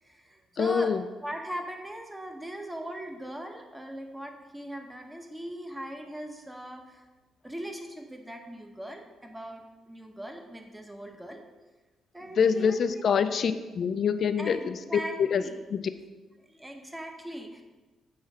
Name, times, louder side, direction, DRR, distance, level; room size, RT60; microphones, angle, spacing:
voice 1, 0.0-0.9 1.2-7.0 7.4-11.5 12.1-13.0 14.4-15.6 16.5-17.6, right 1 dB, 10° right, 4 dB, 0.8 m, -40 dB
voice 2, 0.6-1.0 12.4-15.4 15.7-15.8, left 6 dB, 55° left, 11 dB, 0.4 m, -25 dB
7.2 x 3.1 x 4.9 m, 1.2 s
cardioid pair, 90°, 0 cm